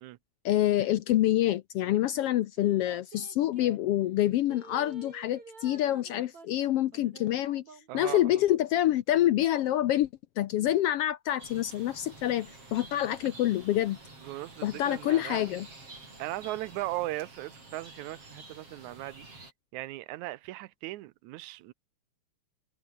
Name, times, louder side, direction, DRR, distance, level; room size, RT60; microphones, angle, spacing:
voice 1, 0.4-7.6 7.9-10.1 10.4-14.0 14.6-15.7, left 13 dB, 70° left, 1.5 m, -27 dB
sound 1, 2.6-3.8 4.5-9.0 9.4-9.5, right 4 dB, 70° right, 6.3 m, -51 dB
voice 2, 7.9-8.2 14.2-15.5 16.2-19.5 19.7-21.7, right 17 dB, 85° right, 2.1 m, -38 dB
sound 2, 11.4-19.5, right 3 dB, 50° right, 8.7 m, -50 dB
omnidirectional pair, 3.3 m